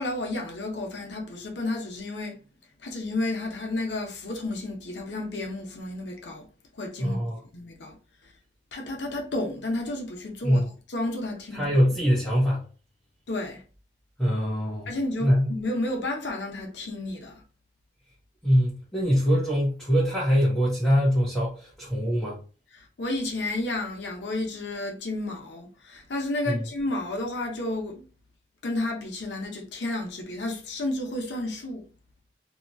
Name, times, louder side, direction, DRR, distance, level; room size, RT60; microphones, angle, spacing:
voice 1, 0.0-2.4 2.8-6.4 6.7-7.2 7.5-8.0 8.2-8.3 8.7-11.7 13.3-13.6 14.9-17.4 22.7-28.1 28.6-31.9, left 2 dB, 90° left, 0.8 m, -31 dB
voice 2, 7.0-7.4 10.4-10.7 11.5-12.6 14.2-14.9 15.2-15.5 18.4-22.4 26.5-26.6, equal, 5° left, 0.8 m, -23 dB
2.9 x 2.3 x 2.6 m
head